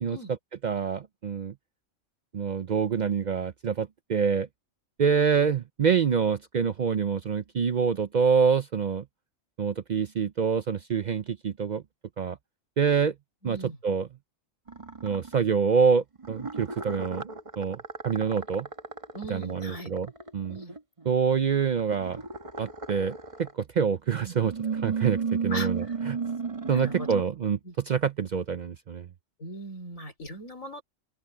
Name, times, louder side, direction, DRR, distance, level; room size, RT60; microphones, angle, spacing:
voice 1, 0.6-1.5 2.3-4.5 5.0-9.0 9.6-11.8 12.2-12.4 12.8-13.1 13.4-14.1 15.0-17.8 18.0-18.7 19.3-20.6 21.1-22.2 22.6-26.2 26.7-27.6 27.9-29.1, right 6 dB, 65° right, 0.4 m, -26 dB
voice 2, 13.4-13.8 19.1-19.9 20.5-20.7 25.5-25.9 26.6-27.3 27.6-27.7 29.4-30.8, equal, 70° left, 5.1 m, -39 dB
sound 1, 14.7-15.4 16.2-21.1 21.7-23.6 24.2-27.2, right 5 dB, 25° right, 1.5 m, -34 dB
open air
omnidirectional pair, 1.4 m